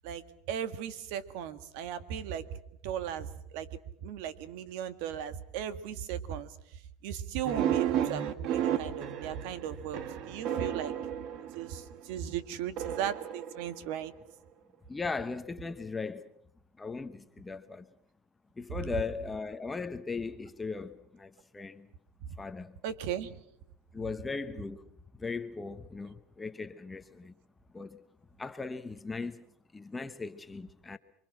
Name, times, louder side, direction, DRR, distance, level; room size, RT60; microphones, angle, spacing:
voice 1, 0.0-10.9 11.5-14.1 18.7-18.8 22.3-22.4 22.8-23.4 30.9-31.0, right 9 dB, 75° right, 1.7 m, -37 dB
sound 1, 7.4-12.0 12.8-14.3, right 10 dB, 55° right, 1.7 m, -33 dB
voice 2, 14.9-16.3 16.8-17.9 18.6-21.9 22.4-22.7 23.9-24.9 25.2-27.3 27.7-28.0 28.4-29.4 29.7-31.0, left 4 dB, 15° left, 1.0 m, -38 dB
29.0 x 24.0 x 6.1 m
cardioid pair, 135°, 0 cm